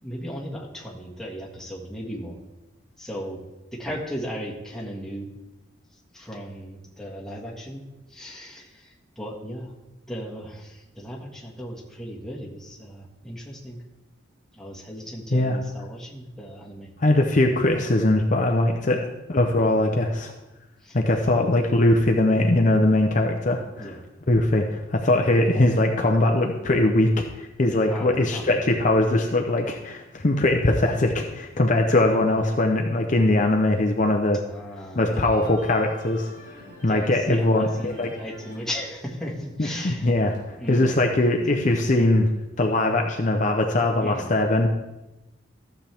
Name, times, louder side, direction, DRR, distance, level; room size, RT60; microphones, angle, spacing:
voice 1, 0.0-2.4 3.0-3.4 3.7-5.3 6.1-7.8 8.1-9.7 10.1-13.8 14.5-16.9 18.8-19.1 19.6-19.8 20.8-21.0 23.8-24.0 27.9-28.6 34.5-35.6 36.9-40.1 40.6-41.0 41.5-41.7 44.0-44.3, equal, 5° left, -4 dB, 1.7 m, -36 dB
voice 2, 17.0-19.0 19.3-20.3 20.9-24.0 24.3-34.4 34.9-38.1 39.6-42.3 42.6-44.7, left 1 dB, 40° left, 3 dB, 0.7 m, -21 dB
sound 1, 35.1-38.7 39.0-40.9, left 1 dB, 75° right, 3.7 m, -47 dB
14.0 x 7.4 x 3.5 m, 1.0 s
head